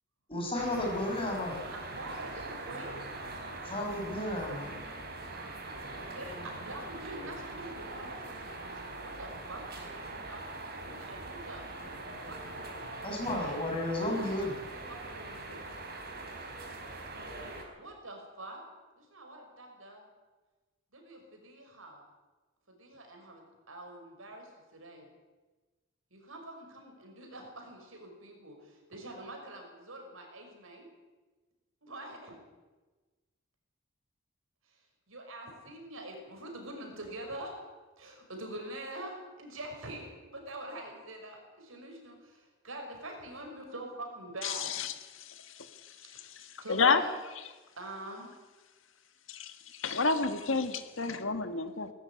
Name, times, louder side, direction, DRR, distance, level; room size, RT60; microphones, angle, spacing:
voice 1, 0.3-1.6 3.6-4.8 5.8-5.9 13.0-14.6, left 1 dB, 25° left, 0 dB, 6.4 m, -33 dB
sound 1, 0.5-17.6, right 2 dB, 50° right, 4.0 m, -42 dB
voice 2, 1.6-3.0 6.0-10.4 10.8-11.6 12.3-15.6 17.7-18.6 19.0-20.0 20.9-22.0 22.7-25.1 26.1-30.9 31.8-32.4 34.7-34.8 35.1-37.6 38.0-44.7 46.1-46.3 46.6-47.1 47.8-48.3, right 1 dB, 90° right, 3 dB, 5.9 m, -45 dB
voice 3, 44.4-46.0 46.7-47.1 49.3-51.9, left 4 dB, 75° left, 8 dB, 1.6 m, -30 dB
18.5 x 14.0 x 10.0 m, 1.2 s
head